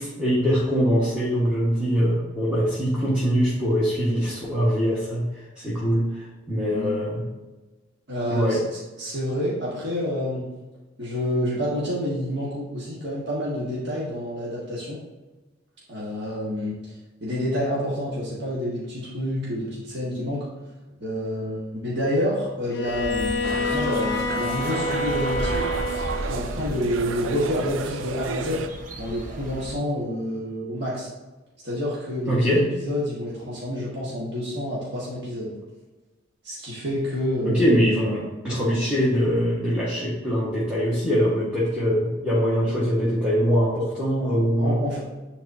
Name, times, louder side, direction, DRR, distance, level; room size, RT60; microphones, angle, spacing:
voice 1, 0.0-7.2 8.3-8.6 32.3-32.7 37.4-44.8, equal, 5° right, -8 dB, 1.3 m, -23 dB
voice 2, 8.1-10.5 11.0-15.0 15.9-20.5 21.0-25.7 26.2-28.6 29.0-31.1 31.6-35.5 36.4-37.9 44.6-45.0, left 1 dB, 60° right, -7 dB, 1.6 m, -28 dB
Bowed string instrument, 22.7-26.4, left 3 dB, 60° left, 0.6 m, -28 dB
sound 1, 22.8-29.7, equal, 45° right, 0.8 m, -36 dB
sound 2, 23.4-28.7, right 6 dB, 85° right, 0.4 m, -32 dB
9.5 x 4.1 x 2.7 m, 1.2 s
head